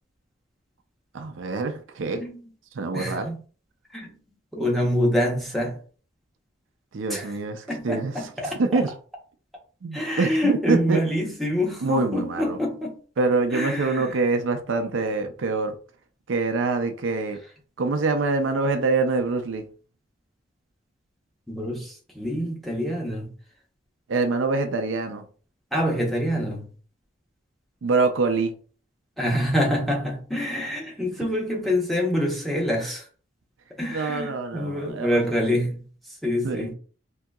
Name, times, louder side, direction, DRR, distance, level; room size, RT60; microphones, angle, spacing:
voice 1, 1.1-2.2 2.7-3.3 6.9-8.3 8.6-8.9 9.8-11.0 11.8-12.6 13.2-15.8 16.3-17.4 17.8-19.6 24.1-25.2 27.8-28.5 33.9-35.4 36.4-36.7, right 3 dB, 85° right, 0.5 m, -25 dB
voice 2, 2.1-2.4 2.9-3.4 3.9-4.2 4.5-5.8 7.1-7.3 7.7-8.6 9.9-12.9 13.5-14.2 21.5-23.3 25.7-26.7 29.2-33.1 33.8-35.8 36.2-36.7, equal, ahead, 0.8 m, -26 dB
3.8 x 2.7 x 2.3 m
head